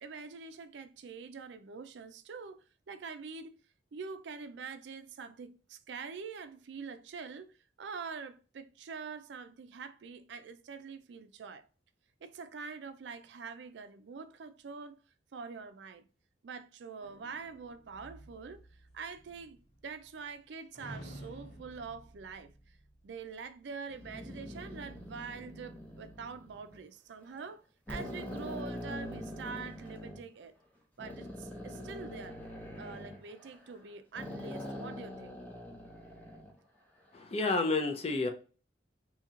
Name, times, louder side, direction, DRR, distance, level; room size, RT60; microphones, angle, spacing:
voice 1, 0.0-3.5 3.9-7.5 7.8-11.7 12.2-15.0 15.3-16.1 16.4-18.6 18.9-19.6 19.8-22.5 23.0-30.5 31.0-32.4 32.8-35.3, right 5 dB, 75° right, 0.4 m, -45 dB
sound 1, 17.0-20.4 20.7-23.4, right 1 dB, 60° left, 1.7 m, -52 dB
sound 2, 23.9-26.8 27.3-27.5 27.9-30.2 31.0-33.8 34.1-36.5, left 1 dB, 10° left, 0.8 m, -43 dB
voice 2, 37.1-38.3, left 3 dB, 35° left, 0.5 m, -30 dB
2.9 x 2.8 x 3.6 m
head